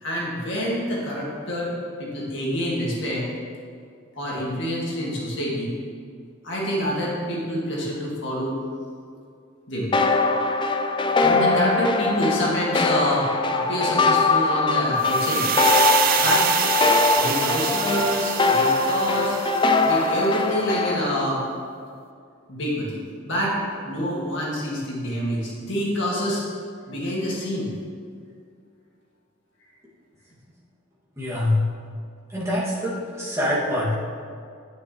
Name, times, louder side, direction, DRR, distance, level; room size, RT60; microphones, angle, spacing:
voice 1, 0.0-1.7 2.0-3.3 4.2-5.7 6.4-8.6 9.7-10.0 11.2-15.5 16.2-16.5 17.2-19.4 19.8-21.4 22.5-23.6 23.8-26.4 26.9-27.7, equal, 60° left, -4 dB, 2.0 m, -27 dB
sound 1, 9.9-21.2, left 3 dB, 25° left, 0.4 m, -22 dB
sound 2, 15.0-20.0, right 8 dB, 45° right, 0.5 m, -26 dB
voice 2, 31.2-31.6 32.3-34.0, left 1 dB, 15° right, -8 dB, 2.1 m, -24 dB
9.4 x 9.4 x 3.1 m, 2.3 s
head